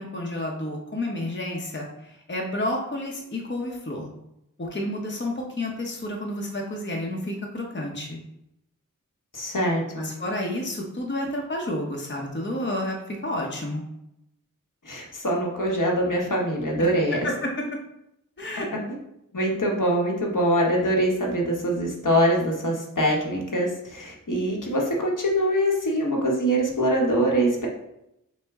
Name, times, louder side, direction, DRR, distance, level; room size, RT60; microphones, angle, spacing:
voice 1, 0.0-1.9 2.3-4.1 4.6-8.2 10.0-13.8 17.2-17.5 18.4-18.7, left 1 dB, 35° left, 0 dB, 0.8 m, -30 dB
voice 2, 9.3-10.1 14.8-17.3 19.3-27.7, equal, 65° left, -1 dB, 1.0 m, -23 dB
6.2 x 2.1 x 3.5 m, 0.84 s
wide cardioid pair, 45°, 33 cm